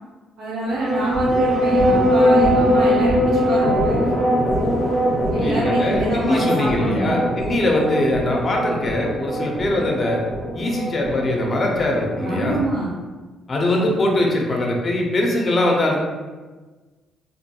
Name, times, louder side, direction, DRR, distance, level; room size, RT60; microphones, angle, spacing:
voice 1, 0.4-4.1 5.3-7.2 12.2-12.9, right 1 dB, 75° right, -8 dB, 0.6 m, -26 dB
sound 1, 0.7-12.6, equal, 15° left, 1.0 m, -21 dB
voice 2, 5.4-10.2 10.5-12.6 13.5-16.0, left 1 dB, 40° left, 0 dB, 0.6 m, -22 dB
2.7 x 2.5 x 2.2 m, 1.3 s
supercardioid pair, 70°, 0 cm